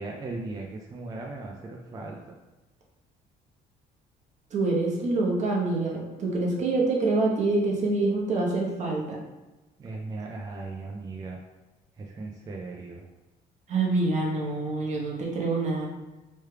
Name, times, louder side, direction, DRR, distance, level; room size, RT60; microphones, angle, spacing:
voice 1, 0.0-2.2 9.8-11.4 12.0-13.0, right 3 dB, 20° right, 0 dB, 0.3 m, -37 dB
voice 2, 4.5-9.2 13.7-15.9, right 3 dB, 45° right, -2 dB, 0.9 m, -26 dB
3.1 x 2.3 x 3.3 m, 1.1 s
cardioid pair, 110°, 17 cm